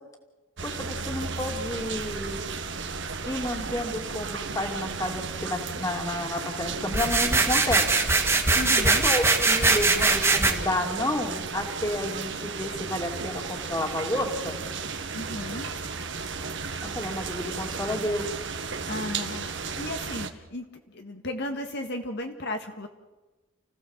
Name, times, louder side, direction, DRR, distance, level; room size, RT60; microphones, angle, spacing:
voice 1, 0.6-2.4 3.3-7.9 9.0-14.6 16.9-18.3, left 1 dB, 15° left, 3 dB, 2.8 m, -31 dB
sound 1, 0.6-20.3, right 4 dB, 65° right, 1.5 m, -34 dB
sound 2, 6.9-10.5, right 3 dB, 15° right, 2.1 m, -22 dB
voice 2, 8.5-9.0 15.1-15.7 18.9-22.9, left 1 dB, 60° left, 4 dB, 1.8 m, -35 dB
30.0 x 16.5 x 7.4 m, 1.2 s
head